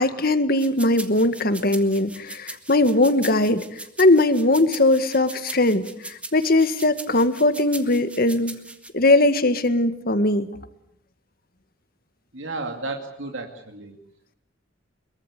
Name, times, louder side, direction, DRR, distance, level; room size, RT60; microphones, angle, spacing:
voice 1, 0.0-3.7 4.0-8.6 8.9-10.5, left 2 dB, 50° left, 10 dB, 1.8 m, -20 dB
sound 1, 0.6-8.9, right 2 dB, 5° right, 1.8 m, -39 dB
voice 2, 12.3-14.0, right 3 dB, 75° right, 4 dB, 2.5 m, -33 dB
23.5 x 23.0 x 8.3 m, 0.73 s
head